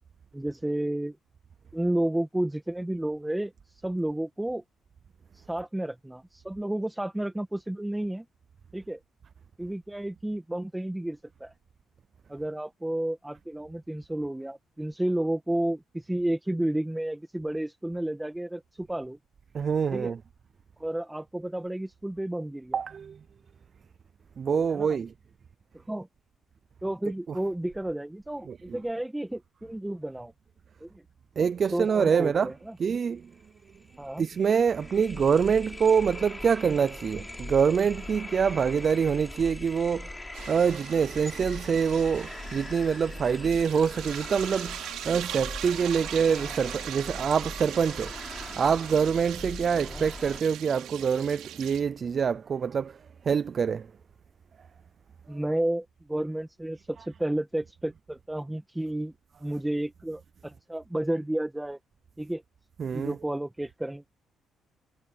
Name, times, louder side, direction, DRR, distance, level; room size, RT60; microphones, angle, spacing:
voice 1, 0.3-1.2 1.7-3.5 3.8-4.6 5.3-8.2 8.7-9.0 9.6-11.5 12.3-19.2 19.9-20.1 20.8-22.8 24.7-25.0 25.7-26.1 26.8-30.3 30.8-31.0 31.7-32.8 34.0-34.3 49.7-50.0 55.3-59.1 59.4-61.8 62.2-62.4 62.9-64.1, right 1 dB, 10° right, 1.5 m, -31 dB
voice 2, 19.5-20.2 22.7-23.2 24.4-25.1 28.5-28.8 31.4-32.5 32.8-33.3 34.2-40.1 40.5-44.8 45.0-53.0 53.2-53.9 62.8-63.2, right 6 dB, 45° right, 0.5 m, -25 dB
sound 1, 33.4-33.5 33.7-50.4, left 2 dB, 15° left, 5.3 m, -41 dB
sound 2, 40.3-51.8, right 12 dB, 90° right, 3.0 m, -40 dB
cardioid pair, 90°, 0 cm